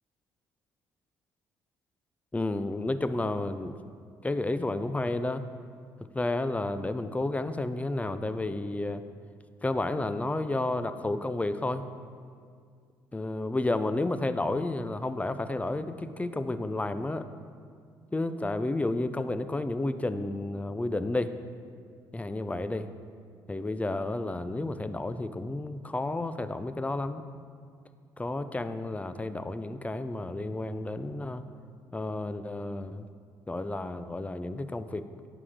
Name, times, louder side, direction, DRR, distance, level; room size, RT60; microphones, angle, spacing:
voice 1, 2.3-3.8 4.2-5.4 6.1-9.0 9.6-11.8 13.1-17.3 18.1-21.4 22.1-22.9 23.5-27.3 28.2-31.4 31.9-33.1 33.5-35.3, left 2 dB, 15° left, 12 dB, 0.4 m, -31 dB
11.0 x 5.0 x 3.7 m, 2.2 s
supercardioid pair, 60°, 10 cm